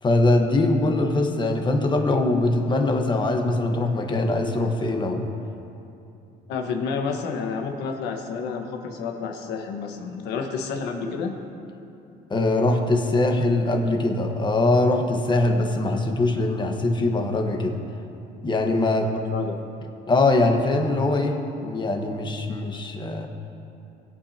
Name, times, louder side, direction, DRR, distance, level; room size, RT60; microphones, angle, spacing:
voice 1, 0.0-5.3 12.3-17.8 18.4-19.1 20.1-23.3, left 2 dB, 25° left, 3 dB, 1.3 m, -22 dB
voice 2, 6.5-11.4 19.0-19.6, left 5 dB, 85° left, 3 dB, 1.4 m, -30 dB
20.5 x 8.6 x 2.9 m, 2.7 s
cardioid pair, 110°, 17 cm